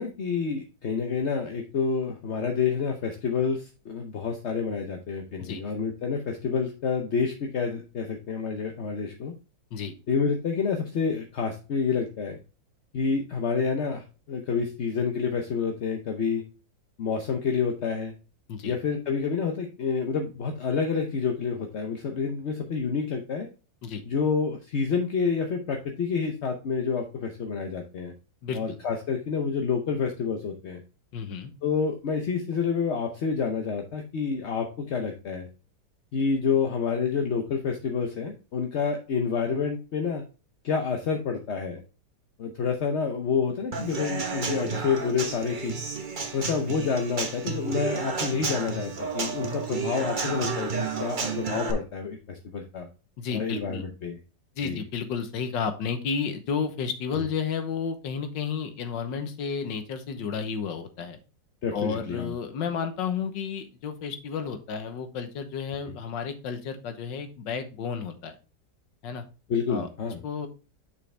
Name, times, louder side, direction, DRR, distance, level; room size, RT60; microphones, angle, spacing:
voice 1, 0.0-9.3 10.1-12.4 12.9-16.4 17.0-18.1 18.6-23.5 24.1-28.1 28.5-30.8 31.6-35.5 36.1-40.2 40.6-41.8 42.4-45.7 46.3-52.9 53.3-54.2 54.6-54.8 61.6-62.3 69.5-70.2, left 5 dB, 50° left, 3 dB, 0.8 m, -28 dB
voice 2, 28.4-28.8 31.1-31.5 44.6-44.8 53.2-53.8 54.6-61.2 61.7-68.3 69.0-69.2 69.7-69.9 70.2-70.5, left 6 dB, 85° left, 8 dB, 1.7 m, -32 dB
Human voice / Acoustic guitar / Drum, 43.7-51.7, right 4 dB, 35° right, 0.9 m, -31 dB
6.9 x 5.7 x 3.3 m, 0.33 s
omnidirectional pair, 1.9 m